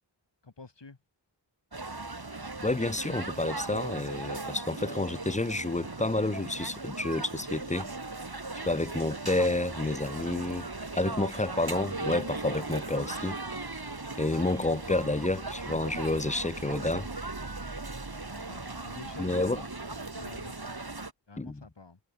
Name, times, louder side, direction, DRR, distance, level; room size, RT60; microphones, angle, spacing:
voice 1, 0.4-1.0 18.3-20.7 21.3-22.0, left 3 dB, 70° left, 3.0 m, -49 dB
sound 1, 1.7-21.1, right 3 dB, 55° right, 3.7 m, -38 dB
voice 2, 2.6-7.9 8.7-13.7 14.2-17.1 19.2-19.6 21.4-21.7, left 2 dB, 15° left, 0.6 m, -30 dB
wide cardioid pair, 40°, 44 cm